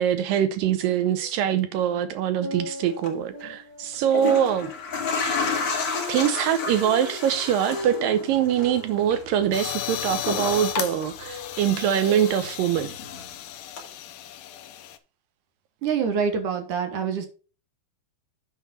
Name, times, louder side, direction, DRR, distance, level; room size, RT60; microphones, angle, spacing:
voice 1, 0.0-4.7 6.1-12.9, right 9 dB, 80° right, 2.0 m, -23 dB
sound 1, 0.9-1.8 2.2-13.3 13.8-13.9, equal, 10° right, 1.3 m, -41 dB
sound 2, 2.9-3.1 3.9-12.0 12.3-13.3 13.8-13.9, left 4 dB, 40° left, 2.9 m, -32 dB
Old Hard Drive Spin Up and Spin Down, 9.5-15.0, left 11 dB, 80° left, 1.9 m, -34 dB
voice 2, 15.8-17.3, right 6 dB, 65° right, 2.3 m, -25 dB
9.5 x 4.7 x 5.2 m
omnidirectional pair, 4.7 m